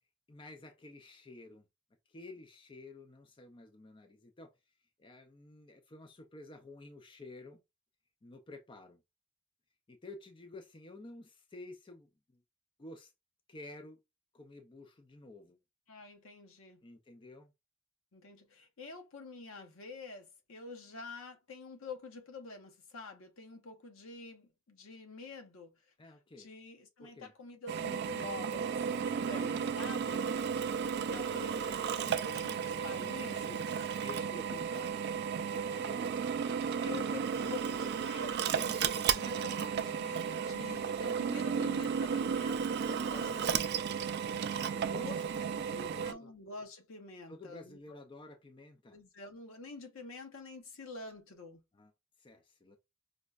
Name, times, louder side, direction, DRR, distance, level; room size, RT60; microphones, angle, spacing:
voice 1, 0.3-1.6 2.1-4.5 5.0-7.6 8.2-9.0 9.9-12.4 12.8-13.1 13.5-14.0 14.3-15.6 16.8-17.5 26.0-26.5 27.0-27.3 28.9-30.0 30.5-30.6 32.6-32.7 33.7-37.6 42.1-42.3 43.1-43.9 44.5-46.3 47.3-49.0 51.7-51.9 52.2-52.8, left 2 dB, 25° left, 0.4 m, -51 dB
voice 2, 15.9-16.8 18.1-25.7 26.4-30.3 30.7-33.8 36.8-37.2 37.5-44.1 44.9-45.2 46.0-48.0 48.9-51.6, left 3 dB, 75° left, 0.8 m, -47 dB
Drill, 27.7-46.1, right 7 dB, 50° right, 0.3 m, -34 dB
5.1 x 2.1 x 2.3 m
head